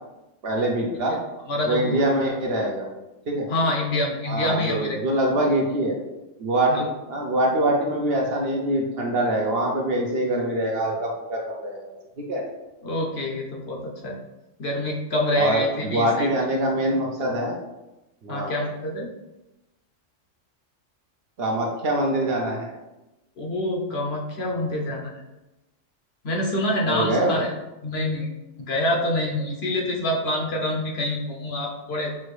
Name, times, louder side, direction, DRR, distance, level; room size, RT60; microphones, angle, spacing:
voice 1, 0.4-1.2 1.7-2.9 3.3-3.5 4.3-6.0 6.4-6.7 7.1-12.4 15.4-17.5 18.2-18.6 21.4-22.7 26.9-27.4, right 1 dB, 55° right, 0 dB, 0.8 m, -24 dB
voice 2, 1.5-2.1 3.5-5.0 6.7-6.8 12.8-14.2 14.6-16.3 18.3-19.1 23.4-25.2 26.2-27.5 27.8-28.3 28.6-32.1, left 1 dB, 60° left, -1 dB, 0.9 m, -26 dB
5.9 x 2.6 x 3.2 m, 1.0 s
omnidirectional pair, 1.3 m